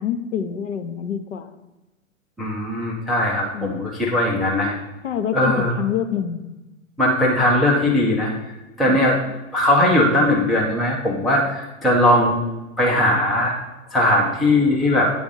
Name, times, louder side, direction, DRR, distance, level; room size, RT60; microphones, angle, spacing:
voice 1, 0.0-1.5 3.5-3.9 5.0-6.5 8.9-9.0, left 8 dB, 60° left, 8 dB, 0.9 m, -26 dB
voice 2, 2.4-4.7 5.3-5.7 7.0-8.5 8.8-9.2 9.5-12.4 12.8-13.5 13.9-15.1, left 1 dB, ahead, -3 dB, 0.3 m, -19 dB
8.9 x 3.5 x 5.4 m, 1.0 s
figure-of-eight pair, 100°, 40 cm